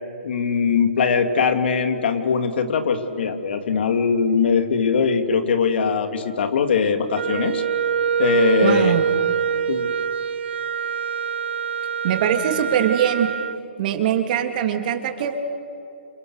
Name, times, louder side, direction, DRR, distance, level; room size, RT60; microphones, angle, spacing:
voice 1, 0.2-7.6 8.2-9.0 9.7-9.9, left 6 dB, 65° left, 6 dB, 2.9 m, -21 dB
Wind instrument woodwind instrument, 7.1-13.6, right 7 dB, 75° right, 0.6 m, -24 dB
voice 2, 8.6-9.0 12.0-13.3 13.8-15.4, right 9 dB, 45° right, 5 dB, 3.2 m, -22 dB
29.0 x 27.5 x 6.7 m, 2.7 s
hypercardioid pair, 145°, 6 cm